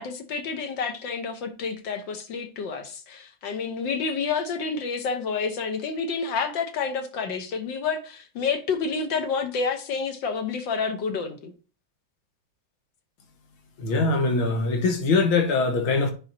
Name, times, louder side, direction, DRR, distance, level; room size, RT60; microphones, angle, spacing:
voice 1, 0.0-11.5, left 5 dB, 70° left, 1.7 m, -29 dB
voice 2, 13.8-16.1, left 3 dB, 85° left, 2.2 m, -22 dB
9.6 x 5.4 x 2.7 m
omnidirectional pair, 2.2 m